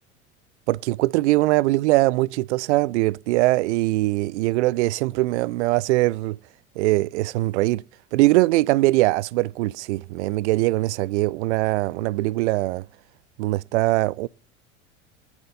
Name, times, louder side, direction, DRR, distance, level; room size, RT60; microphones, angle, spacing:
voice 1, 0.7-6.4 6.8-7.8 8.1-12.8 13.4-14.3, right 19 dB, 65° right, 0.5 m, -21 dB
21.0 x 7.1 x 2.7 m
hypercardioid pair, 80°, 37 cm